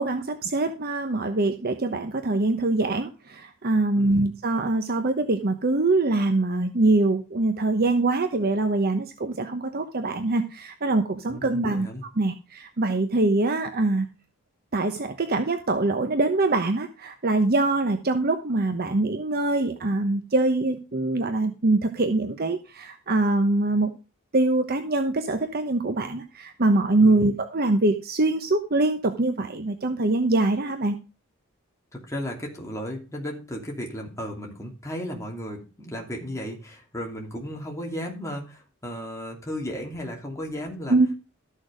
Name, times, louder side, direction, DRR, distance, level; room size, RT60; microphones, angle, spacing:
voice 1, 0.0-11.9 12.2-14.1 14.7-23.9 24.3-31.0 40.9-41.1, right 2 dB, 45° right, 7 dB, 1.0 m, -23 dB
voice 2, 3.9-4.2 11.3-12.0 27.0-27.3 31.9-41.0, equal, 15° left, 0 dB, 2.8 m, -35 dB
13.5 x 6.6 x 5.0 m, 0.32 s
head